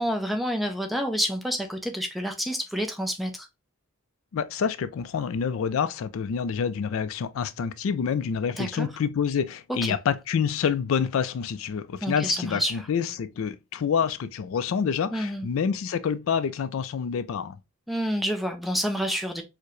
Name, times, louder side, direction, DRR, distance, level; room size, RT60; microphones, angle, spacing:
voice 1, 0.0-3.5 8.6-8.9 9.8-10.0 12.0-12.7 15.1-15.5 17.9-19.4, equal, ahead, 0.4 m, -28 dB
voice 2, 4.3-17.6, left 7 dB, 70° left, 0.3 m, -27 dB
4.5 x 2.1 x 3.0 m
head